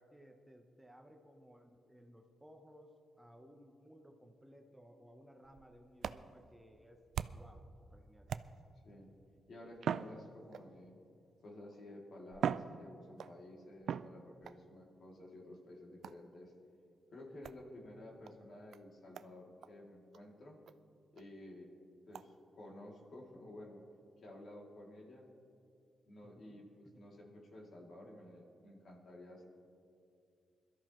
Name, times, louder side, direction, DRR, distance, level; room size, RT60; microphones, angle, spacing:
voice 1, 0.0-7.0 7.3-8.3 26.2-26.6, equal, 5° right, 4 dB, 0.9 m, -60 dB
sound 1, 5.4-7.6 8.3-8.9 9.8-10.9 11.7-11.8 12.3-13.4 13.9-14.6 16.0-16.3 17.4-17.6 18.2-18.3 18.7-18.8 19.1-19.3 19.6-19.7 20.1-20.2 20.7-20.8 21.2-21.3 22.1-22.3, right 8 dB, 75° right, 0.3 m, -41 dB
voice 2, 9.5-11.0 11.4-16.5 17.1-20.6 21.1-21.7 22.1-23.8 24.2-25.3 26.1-29.4, left 1 dB, 60° left, -2 dB, 2.7 m, -53 dB
22.0 x 13.0 x 3.1 m, 2.5 s
cardioid pair, 100°, 0 cm